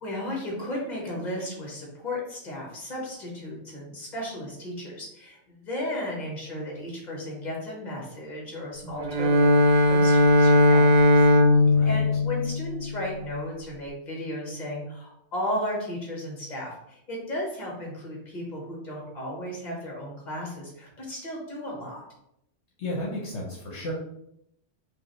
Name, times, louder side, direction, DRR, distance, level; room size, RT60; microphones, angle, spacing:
voice 1, 0.0-11.3 11.8-22.0, left 1 dB, 35° left, -2 dB, 1.4 m, -35 dB
Bowed string instrument, 9.0-13.1, left 1 dB, 65° right, 0.8 m, -19 dB
voice 2, 11.7-12.0 22.8-23.9, left 1 dB, 70° left, -4 dB, 1.2 m, -33 dB
5.0 x 2.5 x 3.1 m, 0.78 s
omnidirectional pair, 1.3 m